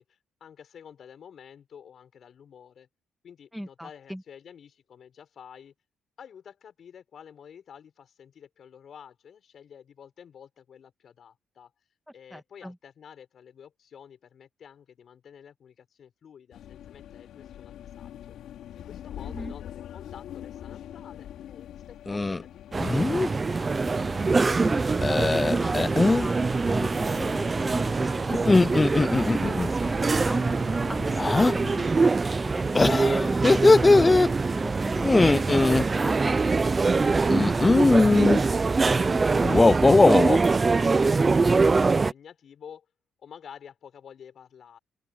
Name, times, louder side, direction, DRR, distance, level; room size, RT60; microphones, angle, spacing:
voice 1, 0.0-2.9 3.2-5.7 6.2-11.7 12.1-18.4 18.7-19.6 19.9-23.5 36.9-42.9 43.2-44.8, left 8 dB, 60° left, 6.0 m, -50 dB
voice 2, 3.5-4.2 12.3-12.7 19.2-19.6 24.3-26.4 26.7-36.4, equal, ahead, 2.0 m, -38 dB
sound 1, 16.5-31.9, left 11 dB, 75° left, 4.8 m, -43 dB
sound 2, 22.1-22.4 22.8-23.3 25.0-26.3 28.3-29.7 31.2-31.5 32.7-34.3 35.0-35.8 37.3-38.4 39.4-40.4, left 3 dB, 20° left, 0.5 m, -20 dB
sound 3, 22.7-42.1, right 4 dB, 30° right, 0.6 m, -24 dB
open air
cardioid pair, 90°, 0 cm